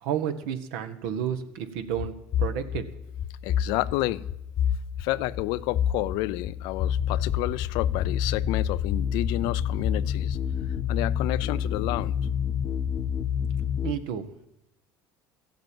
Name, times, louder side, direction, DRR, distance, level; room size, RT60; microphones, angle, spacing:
voice 1, 0.0-2.8 13.8-14.5, right 9 dB, 85° right, 1.4 m, -31 dB
sound 1, 2.0-13.9, left 8 dB, 45° left, 0.9 m, -28 dB
voice 2, 3.4-4.2 5.0-10.4 10.9-12.2, left 17 dB, 75° left, 0.5 m, -30 dB
14.5 x 7.9 x 9.1 m
cardioid pair, 115°, 8 cm